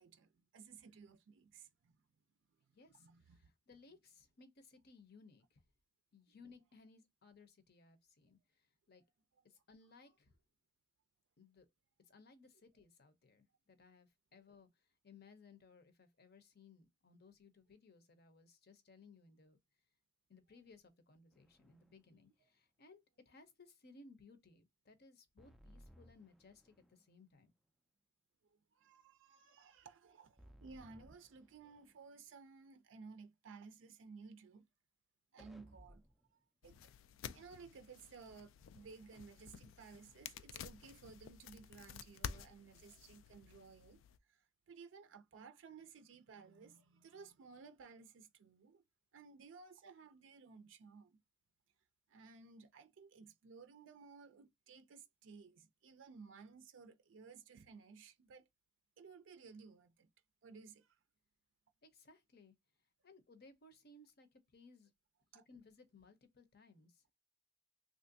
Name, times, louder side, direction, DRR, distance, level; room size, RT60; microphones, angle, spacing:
voice 1, 0.0-2.0 3.0-3.5 28.7-34.7 35.3-36.0 36.6-36.9 37.3-44.0 44.3-48.8 49.1-51.2 52.1-58.5 59.0-60.1 60.4-61.0 65.3-65.4, right 5 dB, 70° right, 0.4 m, -57 dB
voice 2, 2.7-5.6 6.1-9.0 9.4-10.3 11.4-11.7 12.1-19.6 20.3-27.5 61.8-62.5 63.0-64.9 65.3-67.1, left 3 dB, 55° left, 0.7 m, -63 dB
sound 1, 21.3-22.0 25.4-27.1 30.4-32.0 35.4-36.3, equal, ahead, 0.3 m, -62 dB
sound 2, 36.6-44.2, left 8 dB, 85° left, 0.3 m, -51 dB
3.3 x 2.5 x 2.6 m
head